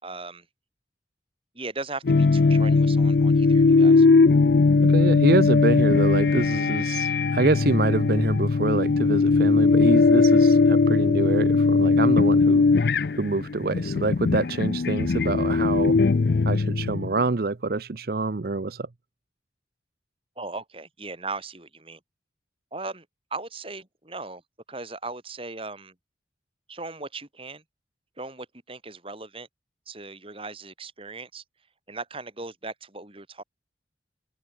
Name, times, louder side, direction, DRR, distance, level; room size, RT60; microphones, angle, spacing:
voice 1, 0.0-0.4 1.5-4.1 20.4-22.0 22.7-23.0 23.3-24.4 24.7-25.9 26.7-27.6 28.2-29.5 29.9-31.4 31.9-33.4, right 3 dB, 30° right, 3.4 m, -38 dB
sound 1, 2.1-17.2, left 4 dB, 60° left, 0.5 m, -19 dB
voice 2, 4.8-16.0 16.4-18.9, right 3 dB, 55° right, 0.7 m, -26 dB
head